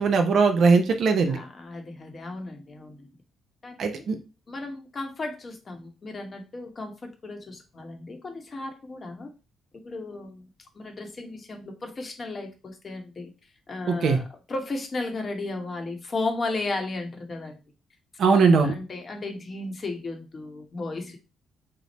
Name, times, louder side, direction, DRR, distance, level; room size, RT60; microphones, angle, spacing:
voice 1, 0.0-1.4 3.8-4.2 13.9-14.2 18.2-18.7, right 4 dB, 65° right, 6 dB, 0.6 m, -20 dB
voice 2, 1.3-3.1 3.6-4.0 4.5-9.3 9.8-10.5 10.7-13.3 13.7-14.2 14.5-17.6 18.2-21.2, left 2 dB, 40° left, 4 dB, 0.8 m, -34 dB
3.0 x 2.0 x 4.0 m, 0.31 s
cardioid pair, 90°, 0 cm